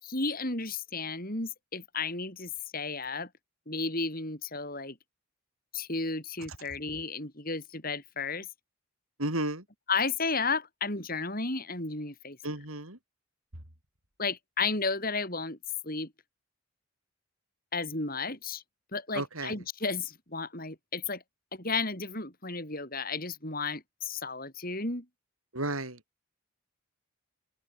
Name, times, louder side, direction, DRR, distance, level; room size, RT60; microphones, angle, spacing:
voice 1, 0.0-3.3 3.7-5.0 5.7-8.5 9.9-12.4 14.2-15.6 15.8-16.1 17.7-18.6 18.9-21.2 21.5-25.1, left 4 dB, 40° left, 5.9 m, -33 dB
voice 2, 9.2-9.6 12.4-13.0 19.1-19.6 25.5-26.0, right 2 dB, 75° right, 7.0 m, -33 dB
open air
head